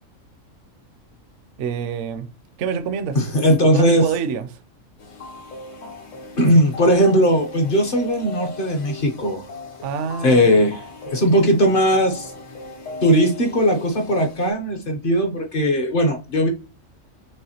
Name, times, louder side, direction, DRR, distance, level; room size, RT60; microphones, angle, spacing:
voice 1, 1.6-2.3 2.6-3.2 3.6-4.6 9.8-10.6, right 6 dB, 70° right, 0.9 m, -27 dB
voice 2, 3.1-4.1 6.4-9.4 10.2-10.8 11.1-12.3 13.0-16.5, equal, 45° left, 0.8 m, -18 dB
sound 1, 5.0-14.5, left 2 dB, 65° left, 1.2 m, -37 dB
5.5 x 3.4 x 2.8 m
omnidirectional pair, 1.4 m